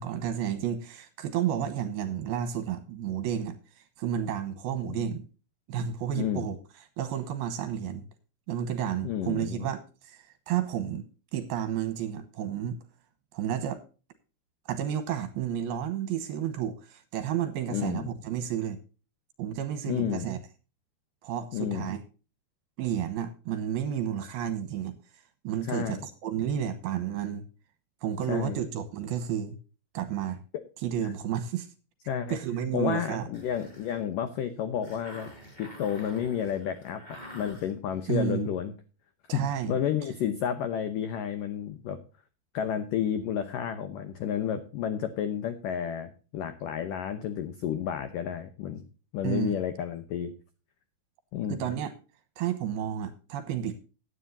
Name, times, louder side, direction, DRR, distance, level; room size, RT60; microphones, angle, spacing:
voice 1, 0.0-5.3 5.7-6.6 7.0-8.1 8.5-11.0 11.3-12.8 13.3-13.8 14.7-18.8 19.4-20.4 21.2-22.0 22.8-25.0 25.4-27.4 28.0-29.6 29.9-30.4 30.8-31.7 32.3-33.3 38.1-38.5 39.3-39.8 49.2-49.6 51.5-51.9 52.4-53.8, right 9 dB, 70° right, 9 dB, 2.6 m, -31 dB
voice 2, 6.1-6.5 9.0-9.7 17.7-18.1 19.9-20.3 21.5-21.9 25.7-26.0 28.3-28.6 30.5-30.6 31.0-31.1 32.1-32.4 32.7-35.3 35.6-37.0 37.3-38.7 39.3-42.0 42.5-48.9 49.1-50.3 51.3-51.6, left 9 dB, 80° left, 9 dB, 1.9 m, -31 dB
sound 1, 33.3-38.5, equal, 10° left, 5.0 m, -48 dB
16.0 x 10.0 x 2.7 m, 0.34 s
omnidirectional pair, 5.2 m